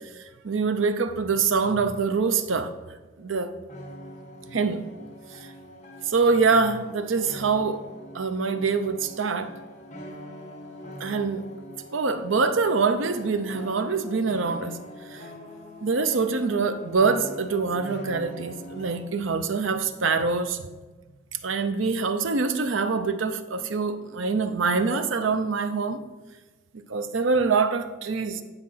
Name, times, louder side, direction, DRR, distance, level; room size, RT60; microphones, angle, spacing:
voice 1, 0.2-2.7 3.2-3.5 4.5-4.9 5.3-5.5 6.1-7.8 8.1-9.5 11.0-11.5 11.9-14.8 15.1-15.2 15.8-20.6 21.3-26.0 26.9-28.4, right 4 dB, 85° right, 0.7 m, -25 dB
sound 1, 3.7-19.1, equal, 40° left, 1.3 m, -43 dB
9.8 x 5.1 x 5.7 m
head